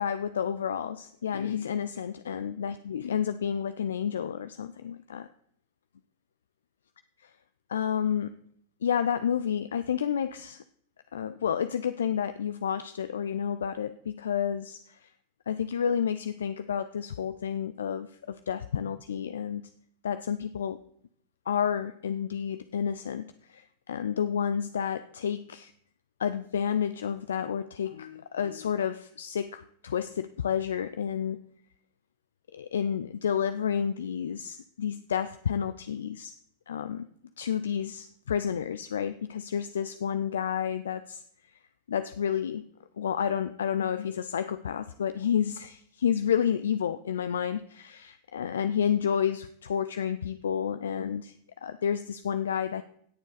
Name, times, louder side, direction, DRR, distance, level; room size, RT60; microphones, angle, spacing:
voice 1, 0.0-5.3 7.2-7.3 7.7-8.4 8.8-10.6 11.1-15.1 15.5-19.7 20.0-20.8 21.5-25.7 26.2-31.4 32.5-36.3 36.7-37.1 37.4-41.2 41.9-42.6 43.0-51.3 51.6-52.8, left 8 dB, 65° left, 12 dB, 0.4 m, -30 dB
17.0 x 7.1 x 4.0 m, 0.67 s
figure-of-eight pair, 90°, 0 cm